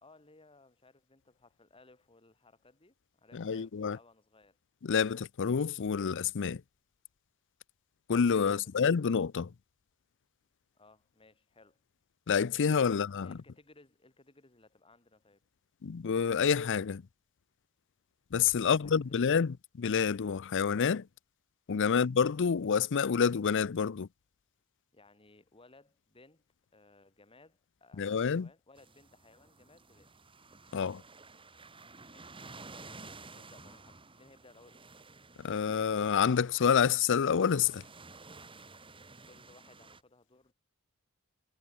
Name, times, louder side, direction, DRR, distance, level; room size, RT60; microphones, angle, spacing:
voice 1, 0.0-4.6 8.5-8.9 10.7-11.8 12.9-15.4 18.6-19.4 24.9-26.5 26.7-30.1 32.0-32.4 32.7-34.8 39.2-40.5, left 2 dB, 25° left, 3.1 m, -61 dB
voice 2, 3.3-4.0 4.8-6.6 8.1-9.5 12.3-13.4 15.8-17.0 18.3-21.1 21.7-24.1 28.0-28.5 30.7-31.0 35.4-37.8, left 6 dB, 55° left, 0.5 m, -28 dB
sound 1, 28.8-40.0, right 3 dB, 25° right, 2.7 m, -53 dB
head